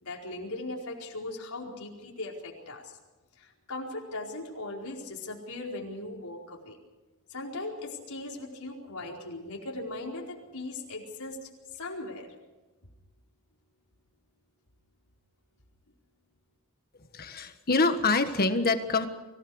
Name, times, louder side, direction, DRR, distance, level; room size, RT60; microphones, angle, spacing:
voice 1, 0.0-3.0 3.4-6.8 7.3-11.4 11.7-12.3, left 2 dB, 85° left, -1 dB, 4.7 m, -39 dB
voice 2, 17.1-19.1, left 3 dB, 45° left, 8 dB, 1.6 m, -25 dB
25.0 x 17.5 x 6.4 m, 1.2 s
head